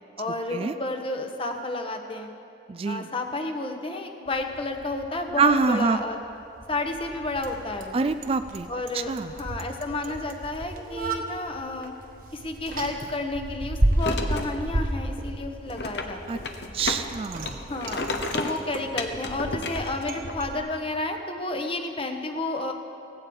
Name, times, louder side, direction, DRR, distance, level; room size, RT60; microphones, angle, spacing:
voice 1, 0.2-2.3 2.8-6.2 6.7-8.0 8.7-11.9 12.3-16.4 17.6-22.7, left 2 dB, 30° left, 5 dB, 1.2 m, -31 dB
voice 2, 2.7-3.1 5.4-6.0 7.9-8.7 9.1-9.3 16.3-16.4 16.7-17.6, right 4 dB, 30° right, 10 dB, 0.4 m, -25 dB
Bicycle, 4.3-20.6, right 1 dB, 50° right, 1.3 m, -33 dB
sound 1, 14.0-14.6 15.7-17.1 17.4-20.4, left 2 dB, 70° left, 1.0 m, -32 dB
17.0 x 16.5 x 4.8 m, 2.6 s
head